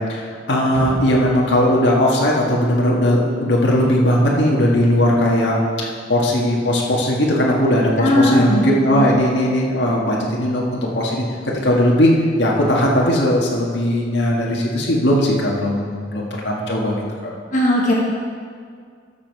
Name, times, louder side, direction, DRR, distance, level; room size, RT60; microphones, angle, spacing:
voice 1, 0.0-11.2 11.6-12.1 12.4-17.0 17.2-17.3, left 1 dB, 75° left, -3 dB, 1.8 m, -18 dB
sound 1, 0.7-2.9 3.3-3.4, right 1 dB, 10° left, 1.4 m, -33 dB
voice 2, 8.0-8.6 8.9-9.1 17.5-17.9, left 1 dB, 45° left, -3 dB, 1.6 m, -17 dB
13.0 x 7.4 x 4.7 m, 2.1 s
head